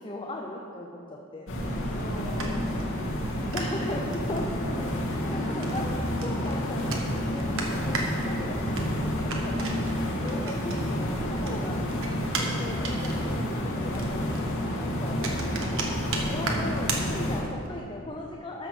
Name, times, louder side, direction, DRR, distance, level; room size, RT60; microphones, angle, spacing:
voice 1, 0.0-1.5 3.5-4.9 5.2-8.9 9.2-9.9 10.1-11.9 12.3-15.2 16.3-18.7, left 1 dB, 25° left, 0 dB, 0.7 m, -38 dB
sound 1, 1.5-17.4, equal, 65° left, 2.1 m, -30 dB
voice 2, 2.0-3.9 5.3-5.7 9.3-9.8 12.4-12.8 15.3-15.6, left 1 dB, 40° left, -6 dB, 3.0 m, -41 dB
sound 2, 2.4-11.1 11.4-17.7, right 3 dB, 65° right, 1.4 m, -37 dB
13.0 x 6.2 x 6.1 m, 2.7 s
head